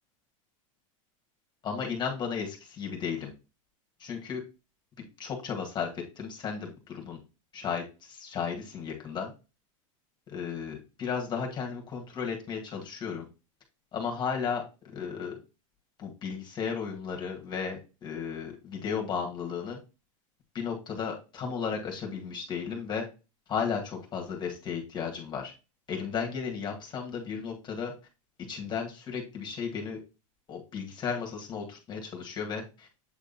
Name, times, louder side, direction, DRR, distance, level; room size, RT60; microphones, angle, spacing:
voice 1, 1.6-3.3 4.0-4.4 5.2-7.2 7.5-9.3 10.3-13.3 13.9-15.3 16.0-19.8 20.5-23.1 23.5-25.5 25.9-27.9 28.5-30.0 30.5-32.9, left 6 dB, 25° left, 1 dB, 2.0 m, -34 dB
8.1 x 3.7 x 4.1 m, 0.30 s
supercardioid pair, 135°, 17 cm